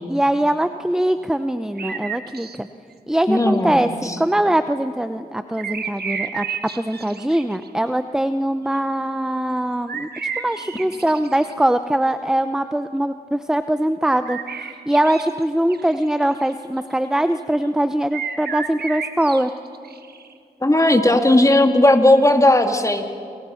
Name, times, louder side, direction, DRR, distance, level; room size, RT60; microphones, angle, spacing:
voice 1, 0.1-2.7 3.1-3.9 4.2-6.4 6.8-10.1 10.4-14.4 14.9-19.5, right 1 dB, 5° right, 10 dB, 0.8 m, -22 dB
sound 1, 1.8-2.6 3.1-3.8 5.6-7.7 8.7-8.8 9.9-11.5 14.2-15.4 15.7-16.9 18.1-20.3, right 6 dB, 70° right, 1.4 m, -32 dB
voice 2, 3.3-4.2 20.6-23.0, left 1 dB, 20° left, 5 dB, 2.4 m, -16 dB
28.5 x 23.0 x 5.8 m, 2.4 s
cardioid pair, 45°, 17 cm